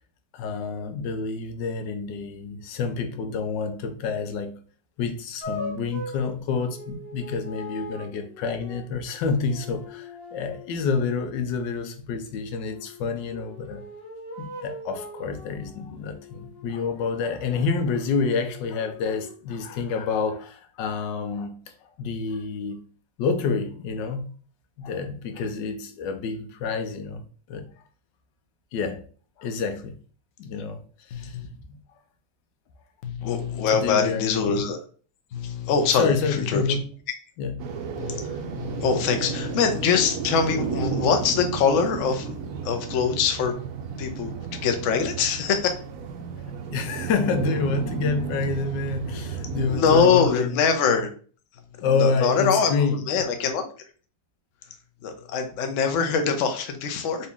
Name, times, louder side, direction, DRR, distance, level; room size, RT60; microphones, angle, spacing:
voice 1, 0.3-4.6 5.0-13.8 14.4-21.5 21.8-22.8 23.2-24.3 24.8-27.6 28.7-29.0 29.4-30.0 30.4-30.8 31.1-31.4 31.7-31.8 33.7-34.3 35.9-36.9 37.4-37.6 46.7-50.6 51.8-53.0, left 5 dB, 85° left, 1.3 m, -28 dB
sound 1, 5.4-11.5 12.6-17.0 17.5-19.3, left 2 dB, 40° left, 1.1 m, -41 dB
voice 2, 31.1-31.5 33.0-34.8 35.3-36.8 38.0-38.2 38.5-42.4 42.6-43.6 44.0-44.3 44.6-45.7 49.7-51.1 51.8-53.6 55.0-57.3, left 6 dB, 65° left, 0.8 m, -23 dB
sound 2, 37.6-50.1, right 6 dB, 70° right, 0.8 m, -33 dB
4.0 x 2.7 x 3.5 m
omnidirectional pair, 1.9 m